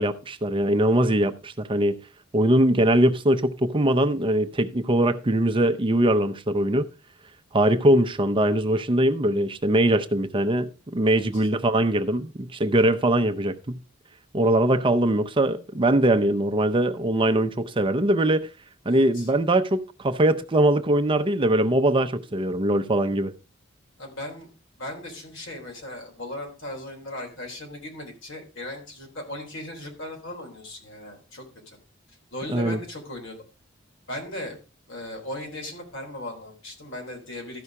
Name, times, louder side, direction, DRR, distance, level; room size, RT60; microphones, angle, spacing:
voice 1, 0.0-2.0 2.3-6.9 7.5-13.8 14.3-18.5 18.9-23.3 32.5-32.8, right 1 dB, 25° right, 0.6 m, -22 dB
voice 2, 11.1-11.5 18.9-19.3 24.0-24.5 24.8-31.8 32.3-33.4 34.1-34.6 34.9-37.6, left 1 dB, 70° left, 3.6 m, -37 dB
13.5 x 5.5 x 4.7 m
head